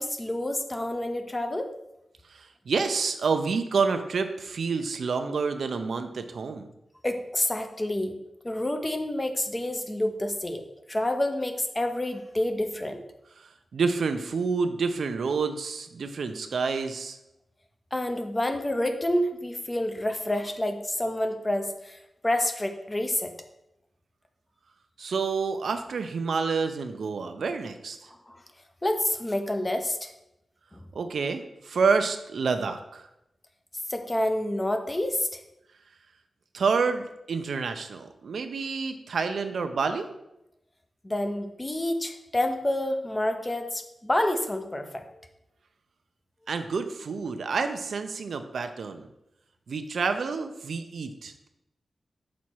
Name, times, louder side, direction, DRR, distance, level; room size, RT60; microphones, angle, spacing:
voice 1, 0.0-1.7 7.0-8.2 8.4-10.6 10.9-13.0 17.9-23.3 28.3-28.4 28.8-30.1 30.7-30.8 33.9-35.4 41.0-45.0, left 1 dB, 20° left, 6 dB, 0.6 m, -28 dB
voice 2, 2.3-6.7 13.4-17.2 25.0-28.0 30.9-33.1 36.5-40.1 46.5-49.1 49.7-51.5, right 5 dB, 80° right, 8 dB, 0.5 m, -28 dB
6.2 x 4.1 x 4.5 m, 0.87 s
wide cardioid pair, 105°, 0 cm